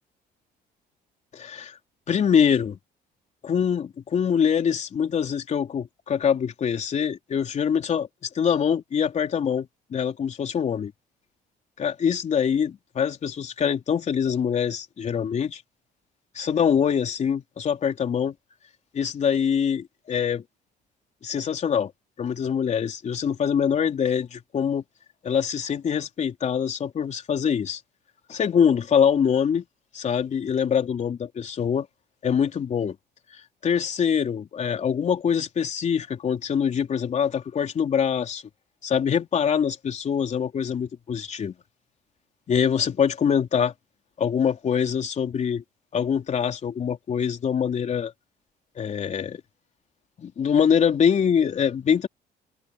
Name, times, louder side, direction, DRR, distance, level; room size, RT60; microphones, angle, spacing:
voice 1, 1.3-1.8 2.1-2.8 3.4-8.1 8.3-10.9 11.8-15.6 16.4-18.4 18.9-20.4 21.2-21.9 22.2-24.8 25.2-27.8 28.3-29.6 29.9-31.9 32.2-33.0 33.6-38.4 38.8-41.5 42.5-43.7 44.2-45.6 45.9-48.1 48.8-49.4 50.2-52.1, left 7 dB, 45° left, 3.8 m, -24 dB
cardioid pair, 110°, 17 cm